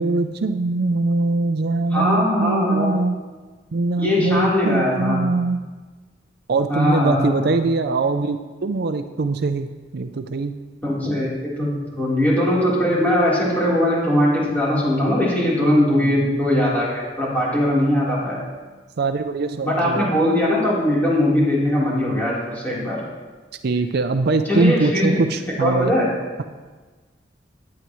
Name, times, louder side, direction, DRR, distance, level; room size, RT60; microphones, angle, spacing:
voice 1, 0.0-3.2 3.7-5.6 6.5-9.7 9.9-10.6 15.8-16.3 19.0-20.1 23.6-25.9, right 3 dB, 60° right, 8 dB, 0.5 m, -22 dB
voice 2, 1.9-2.9 4.0-5.2 6.7-7.4 10.8-18.4 19.6-23.0 24.5-25.2 25.6-26.1, left 1 dB, 10° left, -7 dB, 3.7 m, -20 dB
17.0 x 9.7 x 3.1 m, 1.3 s
head